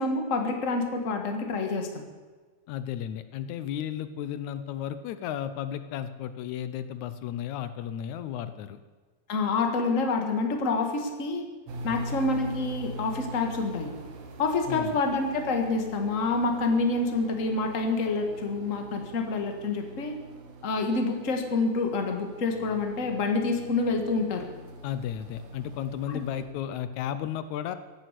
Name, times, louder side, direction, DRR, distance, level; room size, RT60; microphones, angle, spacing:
voice 1, 0.0-1.9 9.3-11.4 11.8-13.9 14.4-20.1 20.6-24.5, left 3 dB, 30° left, 4 dB, 1.6 m, -27 dB
voice 2, 2.7-8.8 11.9-12.2 14.7-15.0 24.8-27.8, left 10 dB, 80° left, 12 dB, 2.0 m, -34 dB
FP Inside A Drainage Pipe, 11.7-26.4, right 2 dB, 70° right, 2.9 m, -42 dB
16.5 x 9.5 x 8.1 m, 1.3 s
omnidirectional pair, 3.4 m